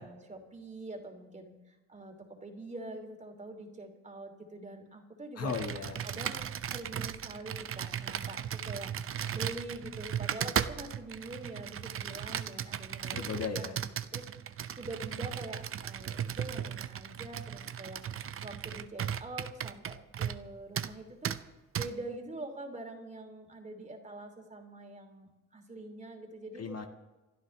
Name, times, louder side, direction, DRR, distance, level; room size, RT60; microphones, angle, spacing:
voice 1, 0.0-5.5 6.0-13.9 14.1-21.3 21.8-26.9, right 2 dB, 25° right, 3 dB, 2.9 m, -45 dB
voice 2, 5.4-6.0 13.1-13.8 26.6-26.9, left 5 dB, 55° left, 4 dB, 1.6 m, -36 dB
Computer keyboard, 5.5-20.5 20.8-20.9 21.2-21.4 21.8-21.9, right 9 dB, 45° right, 0.7 m, -36 dB
28.0 x 12.5 x 3.2 m, 1.1 s
cardioid pair, 90°, 30 cm